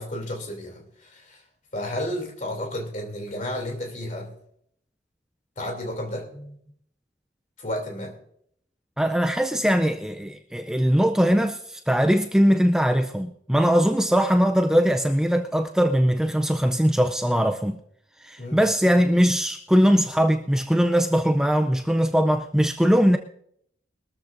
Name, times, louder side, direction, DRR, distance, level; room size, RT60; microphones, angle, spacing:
voice 1, 0.0-1.4 1.7-4.3 5.6-6.6 7.6-8.1 18.4-18.6, left 1 dB, 40° left, 2.9 m, -32 dB
voice 2, 9.0-17.8 18.2-23.2, equal, 5° right, 0.4 m, -21 dB
22.0 x 13.5 x 2.6 m
head